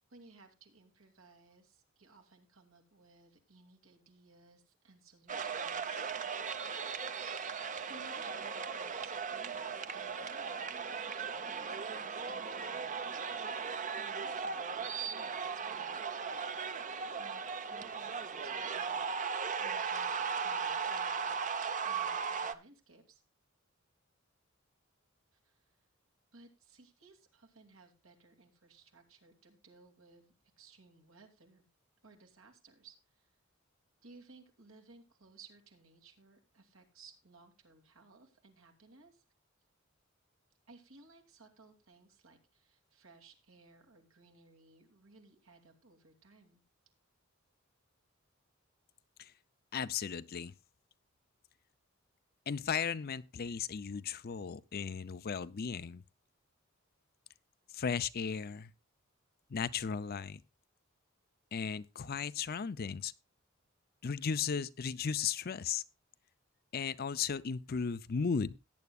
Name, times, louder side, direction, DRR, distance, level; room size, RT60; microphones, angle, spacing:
voice 1, 0.1-6.0 7.9-11.3 11.6-13.1 13.9-16.0 17.2-23.2 25.3-25.9 26.3-31.6 32.0-33.3 34.0-39.2 40.7-46.6, right 3 dB, 85° right, 2.6 m, -60 dB
sound 1, 5.3-22.5, right 6 dB, 40° right, 0.7 m, -37 dB
voice 2, 49.7-50.5 52.5-56.0 57.7-58.7 59.5-60.4 61.5-63.1 64.0-65.8 66.7-68.6, left 6 dB, 45° left, 0.5 m, -36 dB
18.0 x 9.4 x 2.4 m
head